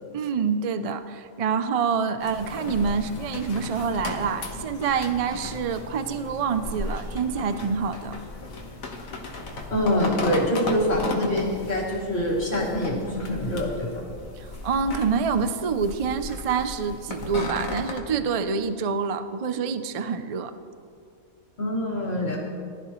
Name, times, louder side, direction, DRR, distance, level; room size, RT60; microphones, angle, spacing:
voice 1, 0.1-8.2 14.4-20.5, right 6 dB, 60° right, 10 dB, 0.3 m, -27 dB
sound 1, 2.2-18.0, left 2 dB, 75° left, 1.7 m, -35 dB
voice 2, 9.7-13.9 21.6-22.4, left 1 dB, 50° left, -4 dB, 2.9 m, -25 dB
19.0 x 12.5 x 3.1 m, 2.2 s
omnidirectional pair, 1.4 m